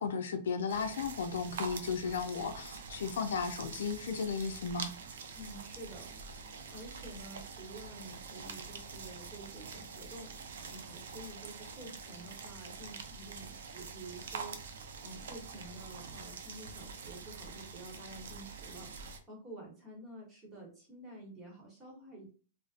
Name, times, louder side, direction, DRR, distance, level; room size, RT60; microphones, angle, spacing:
voice 1, 0.0-4.9, left 5 dB, 75° left, 0.4 m, -35 dB
sound 1, 0.7-19.2, right 5 dB, 80° right, 0.4 m, -45 dB
voice 2, 5.3-22.3, right 1 dB, 15° right, 1.0 m, -50 dB
2.5 x 2.0 x 2.4 m
hypercardioid pair, 150°, 0 cm